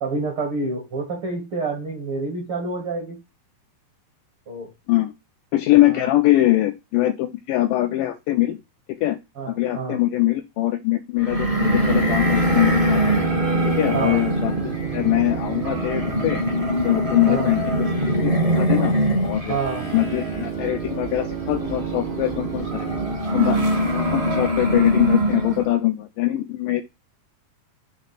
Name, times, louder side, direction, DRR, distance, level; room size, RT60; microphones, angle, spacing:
voice 1, 0.0-3.2 4.5-4.7 5.8-6.1 9.4-10.0 13.9-14.2 17.3-17.5 19.5-19.8, right 4 dB, 65° right, 2 dB, 1.3 m, -28 dB
voice 2, 5.5-8.6 9.0-9.2 9.5-13.2 13.8-16.4 16.8-17.9 18.2-19.6 19.9-22.9 23.3-26.8, left 16 dB, 85° left, 6 dB, 1.9 m, -22 dB
sound 1, 11.2-25.7, equal, 35° right, 0.8 m, -23 dB
sound 2, 11.6-18.0 19.8-23.2, right 11 dB, 80° right, 2.1 m, -32 dB
6.0 x 3.3 x 5.7 m, 0.24 s
omnidirectional pair, 4.4 m